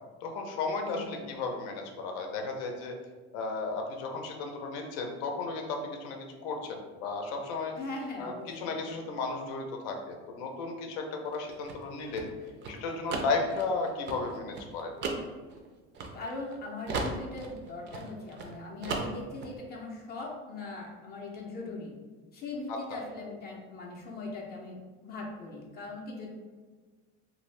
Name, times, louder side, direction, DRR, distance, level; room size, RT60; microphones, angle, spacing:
voice 1, 0.2-2.9 3.3-7.7 8.2-12.3 12.7-14.9 22.7-23.0, left 3 dB, 80° left, 3 dB, 0.7 m, -34 dB
voice 2, 0.8-1.2 7.7-8.9 16.1-21.9 22.3-24.8 25.0-26.3, left 2 dB, 30° left, -2 dB, 0.5 m, -40 dB
sound 1, 11.3-16.6 16.9-18.5 18.8-19.5, right 4 dB, 35° right, 0.4 m, -37 dB
2.6 x 2.5 x 3.2 m, 1.4 s
cardioid pair, 140°, 31 cm